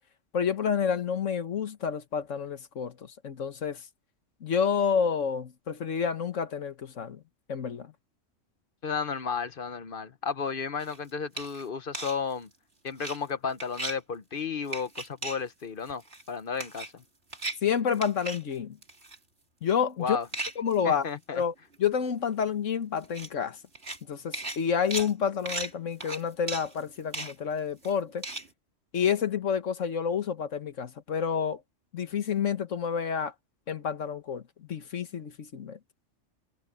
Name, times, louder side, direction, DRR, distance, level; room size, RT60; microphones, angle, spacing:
voice 1, 0.3-3.8 4.4-7.2 7.5-7.9 17.6-18.8 19.6-20.2 20.6-21.0 21.3-23.6 24.1-28.2 28.9-31.6 31.9-33.3 33.7-34.4 34.7-35.8, left 7 dB, 75° left, 1.6 m, -29 dB
voice 2, 8.8-12.5 12.8-16.0 16.3-17.0 20.0-20.3 20.8-21.4, left 5 dB, 50° left, 0.9 m, -33 dB
sound 1, 10.8-11.0 11.4-11.6 11.9-12.2 12.9-13.2 13.6-14.0 14.7-15.4 15.9-16.3 16.6-17.0 17.3-17.6 17.9-18.4 18.8-19.2 20.3-20.7 21.4-21.5 21.7-21.8 22.0-22.1 23.0-23.3 23.7-24.0 24.3-28.5, right 2 dB, 55° right, 3.5 m, -37 dB
omnidirectional pair, 1.3 m